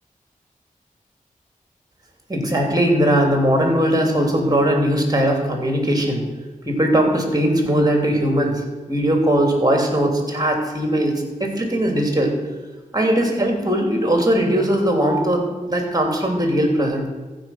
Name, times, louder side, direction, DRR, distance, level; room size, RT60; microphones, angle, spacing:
voice 1, 2.3-6.2 6.6-12.3 12.9-17.1, right 1 dB, 25° right, 2 dB, 3.0 m, -19 dB
15.0 x 5.3 x 5.8 m, 1.2 s
cardioid pair, 40°, 14 cm